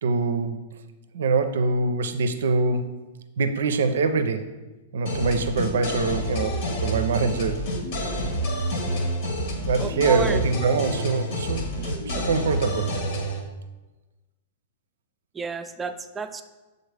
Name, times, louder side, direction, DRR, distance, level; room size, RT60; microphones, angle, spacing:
voice 1, 0.0-0.7 1.1-2.9 3.4-4.5 4.9-7.6 9.5-13.0, right 4 dB, 75° right, 9 dB, 0.5 m, -24 dB
sound 1, 5.0-13.4, equal, 65° left, 1.3 m, -28 dB
voice 2, 9.8-10.4 15.3-16.4, right 4 dB, 15° right, 8 dB, 0.4 m, -31 dB
7.0 x 4.0 x 3.3 m, 1.1 s
hypercardioid pair, 110°, 0 cm